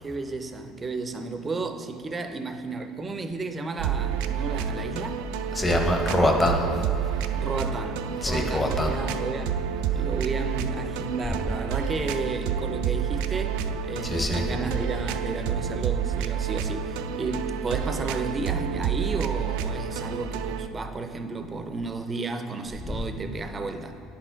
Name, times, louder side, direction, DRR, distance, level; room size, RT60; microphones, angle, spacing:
voice 1, 0.0-5.2 7.4-9.6 9.9-24.0, right 3 dB, 20° right, 7 dB, 0.5 m, -33 dB
sound 1, 3.8-20.7, right 7 dB, 85° right, 0.3 m, -29 dB
voice 2, 5.5-6.6 8.2-8.9 14.0-14.4 22.9-23.0, left 1 dB, 15° left, 3 dB, 0.7 m, -24 dB
9.6 x 4.3 x 4.5 m, 2.9 s
cardioid pair, 140°, 0 cm